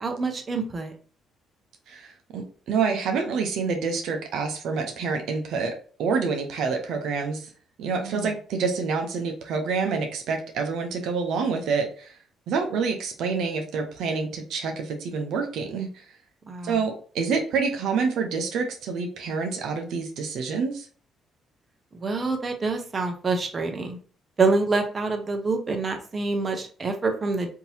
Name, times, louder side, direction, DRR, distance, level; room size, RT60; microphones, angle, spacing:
voice 1, 0.0-0.9 8.0-8.3 16.5-16.8 21.9-24.0 24.4-27.5, right 3 dB, 35° right, 5 dB, 0.8 m, -26 dB
voice 2, 1.9-5.7 6.0-7.5 7.8-12.2 12.5-16.0 16.6-20.9, right 5 dB, 75° right, 4 dB, 0.7 m, -27 dB
3.7 x 2.8 x 2.8 m, 0.41 s
cardioid pair, 85°, 0 cm